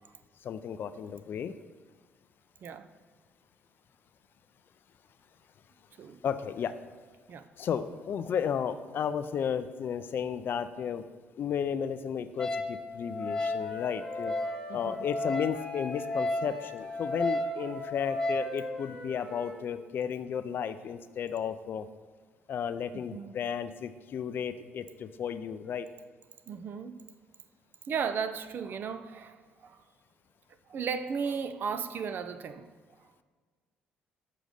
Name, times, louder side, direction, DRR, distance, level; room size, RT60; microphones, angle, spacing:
voice 1, 0.4-1.5 6.2-6.8 7.6-11.0 11.4-14.3 14.7-21.9 22.5-25.9, left 8 dB, 55° left, 12 dB, 0.4 m, -33 dB
Wind instrument woodwind instrument, 12.4-18.5, left 1 dB, 15° left, 0.7 m, -33 dB
Wind instrument woodwind instrument 2, 13.2-16.1 16.4-19.6, right 1 dB, 70° right, 1.9 m, -45 dB
voice 2, 14.7-15.0 22.9-23.3 26.5-27.0 27.9-29.8 30.7-32.7 33.0-33.2, right 6 dB, 55° right, 11 dB, 0.4 m, -35 dB
6.5 x 3.8 x 5.0 m, 1.5 s
supercardioid pair, 60°, 4 cm